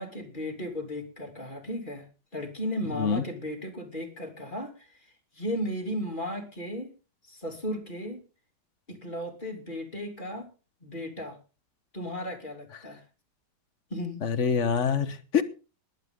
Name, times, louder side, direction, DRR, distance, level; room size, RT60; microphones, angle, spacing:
voice 1, 0.0-2.1 2.3-4.9 5.3-6.9 7.3-8.2 8.9-10.5 10.8-11.4 11.9-13.0 13.9-14.2, equal, 25° left, 3 dB, 3.1 m, -35 dB
voice 2, 14.2-15.4, left 6 dB, 45° left, 12 dB, 1.5 m, -25 dB
20.5 x 11.5 x 3.8 m, 0.34 s
omnidirectional pair, 1.9 m